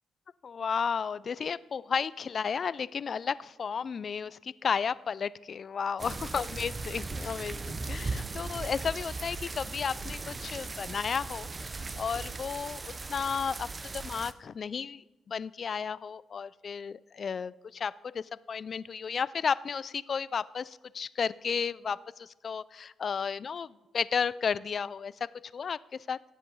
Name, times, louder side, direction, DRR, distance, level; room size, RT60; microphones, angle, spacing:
voice 1, 0.4-11.5 12.0-26.2, left 6 dB, 50° left, 19 dB, 0.3 m, -33 dB
sound 1, 6.0-14.3, right 3 dB, 30° right, 0.6 m, -38 dB
17.0 x 7.4 x 4.0 m, 1.1 s
cardioid pair, 90°, 0 cm